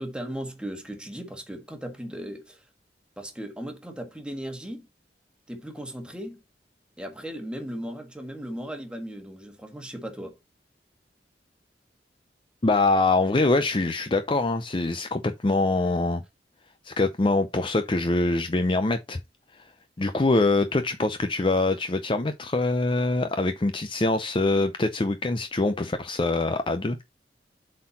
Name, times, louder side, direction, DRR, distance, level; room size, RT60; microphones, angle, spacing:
voice 1, 0.0-2.6 3.2-4.9 5.5-6.4 7.0-10.4, equal, 5° right, 1.6 m, -37 dB
voice 2, 12.6-16.2 16.8-19.2 20.0-27.0, left 2 dB, 30° left, 0.5 m, -24 dB
7.7 x 4.3 x 4.1 m
head